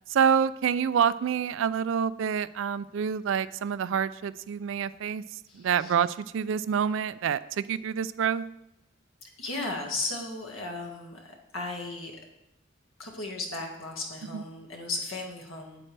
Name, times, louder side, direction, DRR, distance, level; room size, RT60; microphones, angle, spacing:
voice 1, 0.1-8.4 14.3-14.4, right 7 dB, 70° right, 16 dB, 0.3 m, -27 dB
voice 2, 5.5-5.9 9.4-12.1 13.0-15.9, left 2 dB, 80° left, 1 dB, 1.8 m, -36 dB
8.7 x 8.5 x 3.3 m, 0.85 s
head